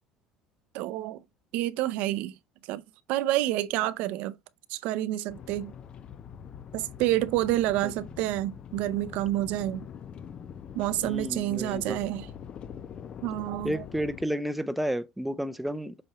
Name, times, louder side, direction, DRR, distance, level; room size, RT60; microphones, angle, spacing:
voice 1, 0.7-1.2 1.5-2.4 2.7-2.8 3.1-4.3 4.7-5.7 6.7-9.9 10.7-12.3 13.2-13.8, right 15 dB, 70° right, 0.6 m, -28 dB
sound 1, 5.3-14.2, left 8 dB, 40° left, 0.7 m, -44 dB
voice 2, 11.0-12.0 13.6-15.9, equal, 5° right, 0.6 m, -31 dB
7.7 x 4.4 x 3.0 m
supercardioid pair, 110°, 3 cm